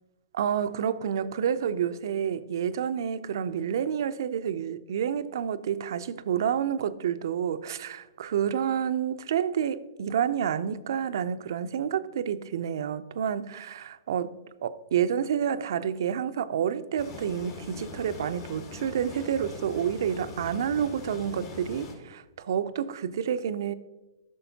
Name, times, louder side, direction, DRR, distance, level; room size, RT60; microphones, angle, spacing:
voice 1, 0.3-14.3 14.6-23.7, right 8 dB, 70° right, 0.5 m, -29 dB
sound 1, 17.0-21.9, left 4 dB, 50° left, 2.1 m, -42 dB
13.0 x 6.3 x 2.8 m
hypercardioid pair, 140°, 2 cm